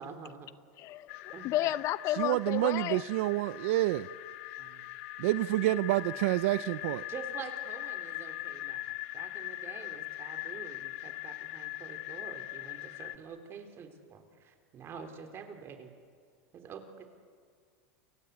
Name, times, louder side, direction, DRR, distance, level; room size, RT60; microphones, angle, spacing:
voice 1, 0.0-0.5 1.3-1.5 4.6-4.9 7.1-15.9 16.5-17.1, right 6 dB, 30° right, 7 dB, 3.8 m, -47 dB
voice 2, 0.8-3.0, left 14 dB, 40° left, 18 dB, 0.6 m, -32 dB
sound 1, 1.1-13.2, left 17 dB, 65° left, 1.2 m, -41 dB
voice 3, 2.2-4.1 5.2-7.0, right 17 dB, 70° right, 16 dB, 0.6 m, -28 dB
29.5 x 23.5 x 8.4 m, 2.1 s
supercardioid pair, 135°, 8 cm